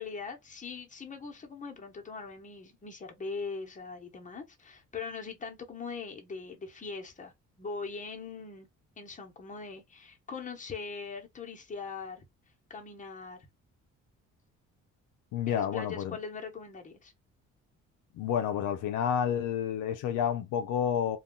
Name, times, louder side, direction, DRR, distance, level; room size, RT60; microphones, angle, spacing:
voice 1, 0.0-7.3 7.6-8.7 9.0-12.2 12.7-13.5 15.5-17.1, left 4 dB, 25° left, 0.9 m, -41 dB
voice 2, 15.3-16.2 18.2-21.2, left 8 dB, 85° left, 0.5 m, -30 dB
2.3 x 2.2 x 3.6 m
cardioid pair, 90°, 30 cm